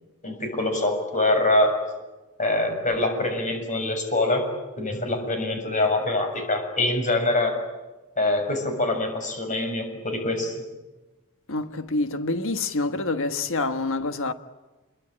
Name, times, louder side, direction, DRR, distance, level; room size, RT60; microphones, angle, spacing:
voice 1, 0.2-1.8 2.4-4.5 4.8-7.6 8.2-10.5, left 2 dB, 35° left, 6.7 m, -24 dB
voice 2, 11.5-14.3, left 3 dB, 60° left, 1.4 m, -27 dB
27.5 x 23.0 x 8.8 m
head